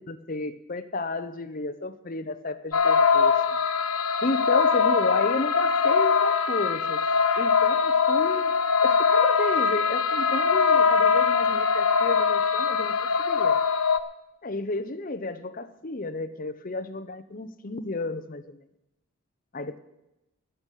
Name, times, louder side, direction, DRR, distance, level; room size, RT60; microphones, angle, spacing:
voice 1, 0.1-3.3 4.2-7.0 7.4-8.5 8.8-12.9 13.2-13.6 14.4-18.6 19.5-19.8, left 2 dB, 40° left, 11 dB, 0.7 m, -32 dB
sound 1, 2.7-14.0, left 5 dB, 90° left, 0.8 m, -22 dB
11.5 x 8.8 x 8.3 m, 0.90 s
head